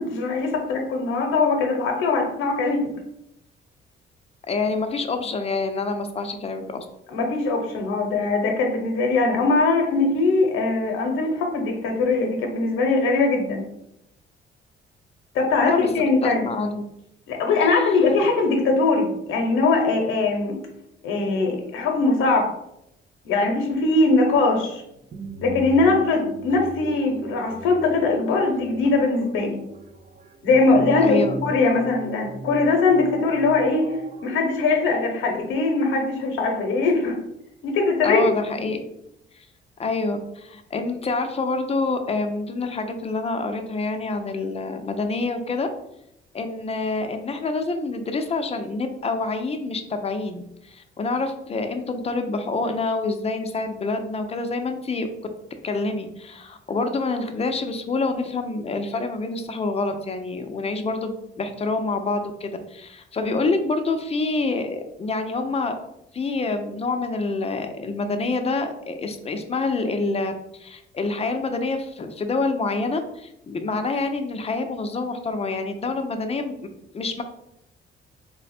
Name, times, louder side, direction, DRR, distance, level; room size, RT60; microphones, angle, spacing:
voice 1, 0.0-2.9 7.1-13.7 15.3-16.5 17.3-20.6 21.0-22.5 23.2-24.8 25.4-29.6 30.4-34.0 34.2-37.2 37.6-38.3 38.6-38.7 63.2-63.3, left 3 dB, 90° left, 2 dB, 0.7 m, -21 dB
voice 2, 4.5-6.9 15.6-15.9 16.2-16.8 31.0-31.4 38.0-38.8 39.3-39.5 39.8-45.7 46.3-55.1 55.6-65.7 66.1-70.3 70.6-76.5 76.9-77.2, left 3 dB, 30° left, 7 dB, 0.5 m, -27 dB
sound 1, 23.7-34.4, right 3 dB, 35° right, 0.4 m, -38 dB
3.3 x 2.1 x 4.2 m, 0.80 s
cardioid pair, 90°, 20 cm